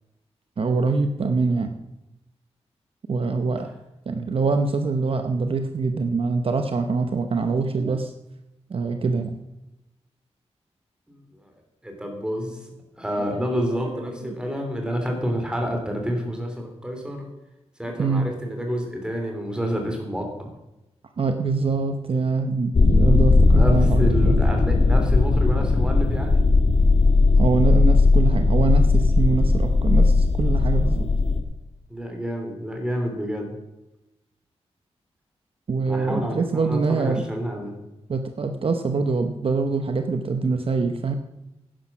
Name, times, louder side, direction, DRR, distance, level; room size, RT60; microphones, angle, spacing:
voice 1, 0.6-1.7 3.1-3.7 4.1-8.1 8.7-9.4 13.7-14.1 18.0-18.3 21.2-24.4 27.4-31.0 35.7-37.2 38.1-41.1, right 4 dB, 55° right, 6 dB, 0.9 m, -24 dB
voice 2, 11.1-11.5 11.8-12.7 13.0-17.3 17.8-20.3 23.5-26.5 31.9-33.5 35.8-37.8, equal, 10° right, 2 dB, 3.3 m, -29 dB
sound 1, 22.7-31.4, left 3 dB, 50° left, 1.7 m, -18 dB
11.5 x 10.0 x 6.1 m, 0.96 s
wide cardioid pair, 130°, 11 cm